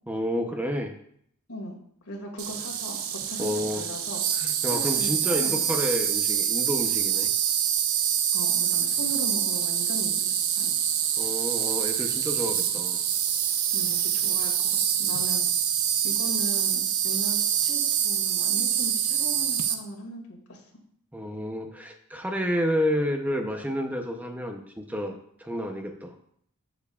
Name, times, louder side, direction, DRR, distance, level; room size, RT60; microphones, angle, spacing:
voice 1, 0.1-0.9 3.4-3.8 4.4-7.3 11.2-13.0 21.1-26.1, equal, 5° right, 4 dB, 0.7 m, -30 dB
voice 2, 2.0-4.2 4.7-5.9 8.3-10.8 12.5-12.7 13.7-15.5 16.0-20.6, equal, 85° left, 0 dB, 2.2 m, -39 dB
Insect, 2.4-19.7, right 9 dB, 75° right, 0.7 m, -26 dB
13.5 x 7.0 x 2.4 m, 0.66 s
head